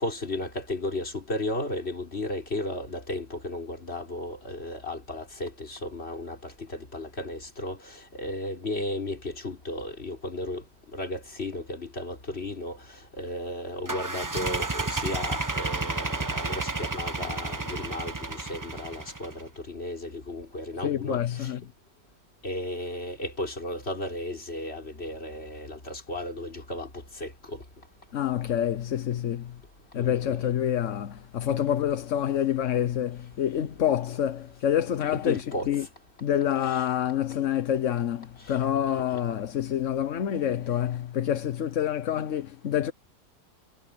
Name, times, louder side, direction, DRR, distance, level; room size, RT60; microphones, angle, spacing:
voice 1, 0.0-10.6 10.9-12.8 13.2-21.5 22.4-27.6 30.0-30.4 35.1-35.7 36.7-36.8 37.3-37.6 38.4-38.6 38.9-39.2, left 1 dB, 45° left, 4.2 m, -34 dB
sound 1, 13.9-19.4, right 3 dB, 15° right, 0.7 m, -31 dB
voice 2, 20.8-21.6 28.1-29.6 29.9-35.9 36.2-42.9, left 10 dB, 60° left, 1.2 m, -27 dB
omnidirectional pair, 1.6 m